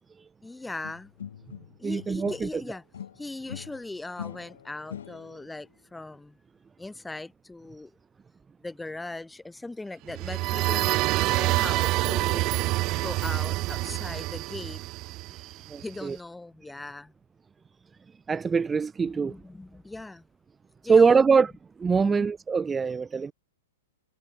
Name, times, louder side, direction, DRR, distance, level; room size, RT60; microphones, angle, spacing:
voice 1, 0.4-1.1 1.8-2.8 3.2-6.4 6.8-7.9 8.6-12.5 13.0-14.8 15.8-17.1 19.1-20.2 20.8-21.2 22.0-22.3, left 2 dB, 5° left, 2.5 m, -39 dB
sound 1, 0.8-2.6 2.9-5.5, left 9 dB, 75° left, 4.2 m, -42 dB
voice 2, 1.8-2.5 15.7-16.2 18.3-19.3 20.9-21.5 21.8-23.3, right 5 dB, 15° right, 1.3 m, -23 dB
sound 2, 10.1-15.8, right 20 dB, 35° right, 0.5 m, -27 dB
hypercardioid pair, 120°, 0 cm